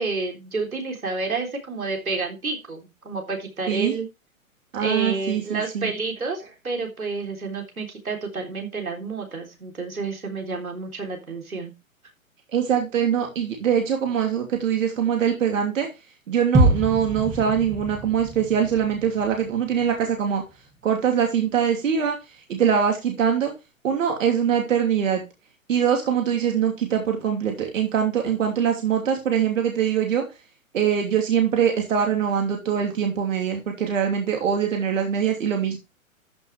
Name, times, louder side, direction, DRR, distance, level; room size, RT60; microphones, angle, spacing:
voice 1, 0.0-4.1 4.8-11.7, right 3 dB, 90° right, 2 dB, 3.6 m, -30 dB
voice 2, 4.7-5.9 12.5-15.9 16.3-20.4 20.8-22.2 22.5-23.5 23.8-25.2 25.7-30.2 30.7-35.8, right 8 dB, 65° right, 2 dB, 3.0 m, -23 dB
sound 1, 16.5-20.5 20.8-20.9, right 1 dB, 5° right, 2.4 m, -25 dB
14.0 x 6.1 x 3.4 m, 0.26 s
hypercardioid pair, 125°, 41 cm